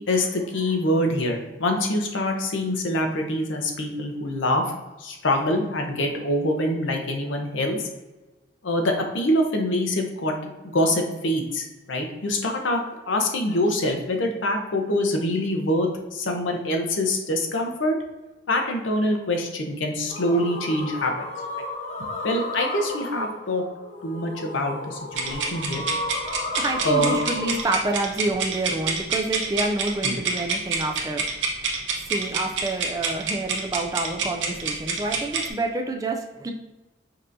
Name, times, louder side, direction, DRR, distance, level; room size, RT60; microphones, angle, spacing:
voice 1, 0.0-4.7 5.0-7.8 8.6-10.3 10.6-12.8 13.1-17.9 18.5-21.1 22.0-23.6 24.0-25.8 26.8-27.2 30.0-30.2, left 1 dB, 85° left, 3 dB, 0.7 m, -25 dB
sound 1, 20.1-27.6, left 2 dB, 40° left, 0.6 m, -33 dB
sound 2, 25.1-35.5, right 4 dB, 75° right, 0.7 m, -27 dB
voice 2, 26.5-31.4 32.0-36.5, right 2 dB, 20° right, 2 dB, 0.3 m, -28 dB
5.3 x 2.8 x 2.6 m, 1.1 s
head